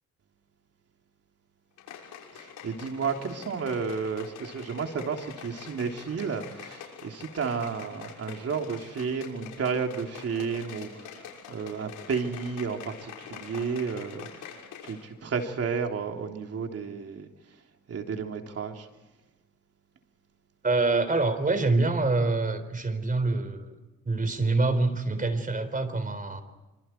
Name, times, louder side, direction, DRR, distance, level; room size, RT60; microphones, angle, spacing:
sound 1, 1.8-15.1 15.3-15.4, left 7 dB, 85° left, 6.3 m, -45 dB
voice 1, 2.3-17.3 17.9-18.9, right 5 dB, 50° right, 3 dB, 3.4 m, -32 dB
voice 2, 20.6-23.8 24.1-26.4, right 3 dB, 25° right, 10 dB, 4.0 m, -26 dB
27.5 x 25.5 x 4.6 m, 1.1 s
cardioid pair, 90°, 30 cm